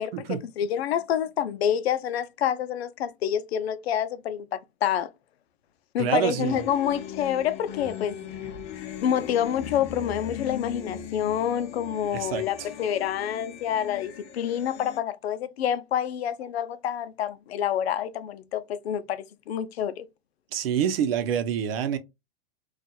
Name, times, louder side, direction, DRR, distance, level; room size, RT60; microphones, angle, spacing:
voice 1, 0.0-5.1 5.9-8.2 9.0-20.1, left 9 dB, 80° left, 0.6 m, -28 dB
voice 2, 6.0-6.6 12.1-12.4 20.5-22.0, right 8 dB, 65° right, 0.7 m, -26 dB
sound 1, 6.4-15.0, left 9 dB, 30° left, 0.6 m, -39 dB
4.3 x 2.4 x 2.3 m
supercardioid pair, 155°, 31 cm